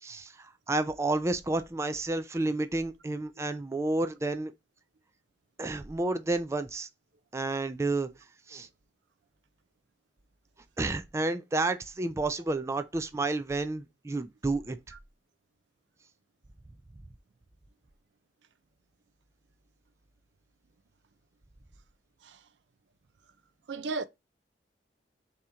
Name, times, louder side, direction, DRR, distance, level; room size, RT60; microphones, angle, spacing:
voice 1, 0.0-4.5 5.6-6.9 7.3-8.1 8.5-8.7 10.8-14.8, right 2 dB, 15° right, 0.3 m, -30 dB
voice 2, 23.7-24.0, right 4 dB, 80° right, 0.5 m, -34 dB
3.7 x 2.8 x 4.2 m
head